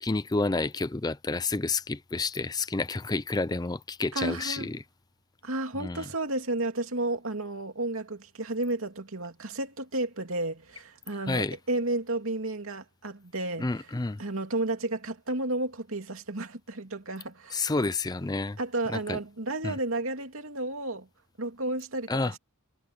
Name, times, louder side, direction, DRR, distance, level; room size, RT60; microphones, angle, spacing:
voice 1, 0.0-4.8 5.8-6.0 11.3-11.6 13.6-14.2 17.5-18.6 18.9-19.2 19.6-19.8 22.1-22.3, left 3 dB, 20° left, 0.5 m, -29 dB
voice 2, 4.1-4.7 5.4-13.9 14.2-17.7 18.6-21.1 21.4-22.4, right 2 dB, 75° right, 2.7 m, -32 dB
head